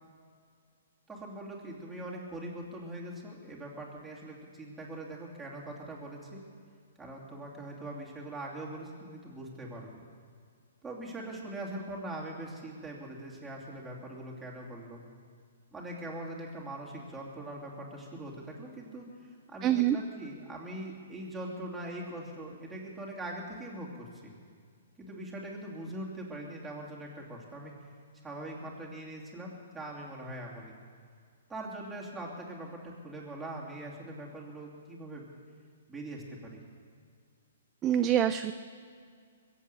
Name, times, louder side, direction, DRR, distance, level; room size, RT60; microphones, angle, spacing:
voice 1, 1.1-6.4 7.0-10.0 10.8-15.0 15.7-24.3 25.0-27.7 28.2-30.7 31.5-35.2 35.9-36.6, right 1 dB, 5° right, -4 dB, 3.0 m, -42 dB
voice 2, 19.6-20.0 37.8-38.5, right 11 dB, 20° right, 9 dB, 0.4 m, -25 dB
22.0 x 8.4 x 6.9 m, 2.1 s
hypercardioid pair, 140°, 0 cm